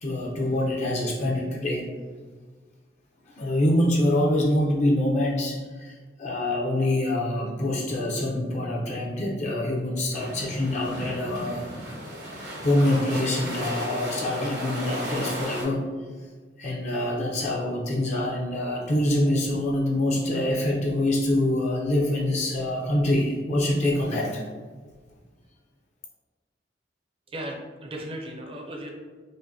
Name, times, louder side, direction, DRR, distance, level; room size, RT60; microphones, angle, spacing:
voice 1, 0.0-1.9 3.4-12.0 12.3-15.9 16.6-24.4, left 1 dB, 40° left, -2 dB, 0.6 m, -25 dB
sound 1, 10.1-15.6, equal, 75° right, 1.1 m, -34 dB
voice 2, 27.3-28.9, right 1 dB, 30° right, 1 dB, 0.5 m, -36 dB
5.0 x 2.1 x 2.7 m, 1.5 s
head